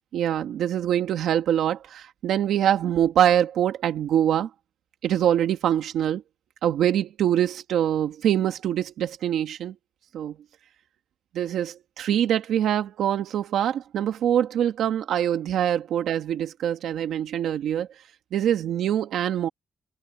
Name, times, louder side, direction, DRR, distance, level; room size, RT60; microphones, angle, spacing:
voice 1, 0.1-4.5 5.0-6.2 6.6-9.7 10.1-10.3 11.3-17.9 18.3-19.5, right 10 dB, 80° right, 1.7 m, -24 dB
cardioid pair, 100°, 0 cm